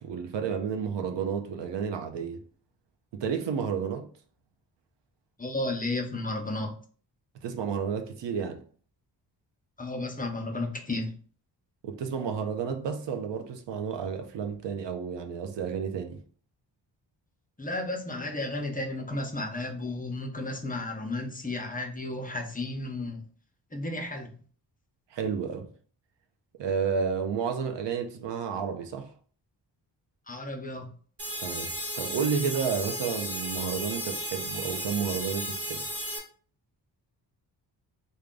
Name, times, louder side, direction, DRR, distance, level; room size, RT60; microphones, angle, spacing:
voice 1, 0.0-2.4 3.1-4.1 7.4-8.6 11.8-16.2 25.1-25.7 26.6-29.1 31.4-35.9, right 6 dB, 75° right, 0.7 m, -31 dB
voice 2, 5.4-6.8 9.8-11.1 17.6-23.2 23.7-24.3 30.3-30.9, left 2 dB, 20° left, 0.6 m, -33 dB
sound 1, 31.2-36.2, equal, 30° right, 1.1 m, -34 dB
3.4 x 2.2 x 3.7 m
cardioid pair, 95°, 43 cm